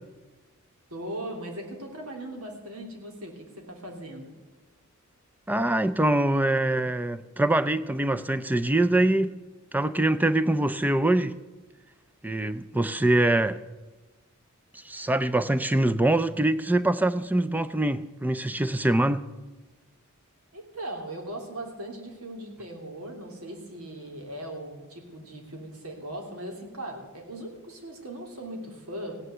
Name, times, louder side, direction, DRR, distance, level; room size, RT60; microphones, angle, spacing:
voice 1, 0.9-4.3 20.5-29.2, right 1 dB, 90° right, 3.1 m, -39 dB
voice 2, 5.5-9.3 9.7-11.4 12.2-13.6 14.8-19.2, right 1 dB, 10° right, 0.5 m, -24 dB
16.0 x 9.7 x 7.8 m
head